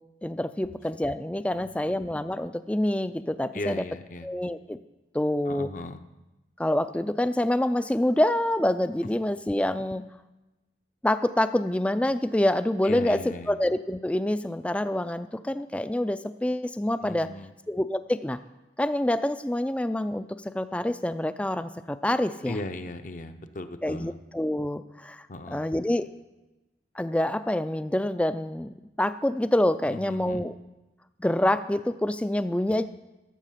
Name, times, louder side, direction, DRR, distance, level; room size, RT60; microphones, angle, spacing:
voice 1, 0.2-3.8 4.2-4.8 5.1-5.7 6.6-10.0 11.0-13.2 13.5-17.3 17.7-18.4 18.8-22.6 23.8-25.3 25.5-26.1 27.0-30.5 31.2-32.8, left 1 dB, 5° left, 12 dB, 0.3 m, -26 dB
voice 2, 1.5-2.0 3.5-4.3 5.5-6.0 12.8-13.6 17.0-17.5 22.5-24.2 25.3-25.7 29.8-30.5, left 2 dB, 45° left, 9 dB, 0.7 m, -38 dB
14.0 x 7.5 x 5.7 m, 1.0 s
head